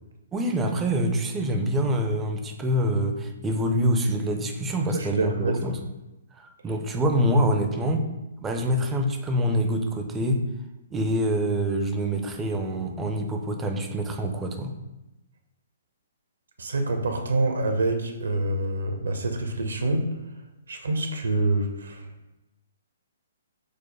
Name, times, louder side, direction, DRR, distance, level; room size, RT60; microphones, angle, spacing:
voice 1, 0.3-5.8 6.4-8.1 8.4-10.4 10.9-14.7, equal, 10° right, 4 dB, 0.4 m, -25 dB
voice 2, 4.8-5.6 16.6-20.0 20.7-22.1, right 2 dB, 65° right, 4 dB, 0.7 m, -26 dB
4.9 x 2.1 x 4.1 m, 1.0 s
figure-of-eight pair, 125°, 0 cm